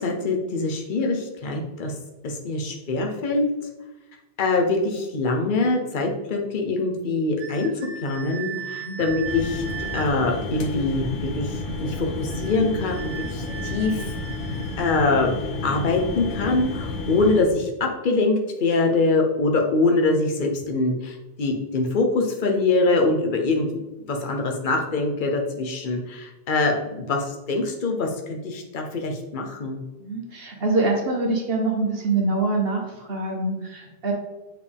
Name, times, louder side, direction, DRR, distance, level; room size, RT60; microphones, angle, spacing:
voice 1, 0.0-1.9 2.2-3.5 4.4-7.7 8.0-9.6 9.9-11.5 11.8-14.1 14.8-15.3 15.6-23.8 24.1-29.8, left 3 dB, 45° left, 2 dB, 1.0 m, -24 dB
sound 1, 7.4-10.2 12.3-14.9, right 8 dB, 85° right, 1.0 m, -37 dB
voice 2, 8.6-9.0 16.0-16.2 30.0-34.1, right 3 dB, 55° right, 0 dB, 1.4 m, -25 dB
sound 2, 9.2-17.4, left 2 dB, 85° left, 1.4 m, -31 dB
7.5 x 4.6 x 3.5 m, 1.1 s
omnidirectional pair, 1.2 m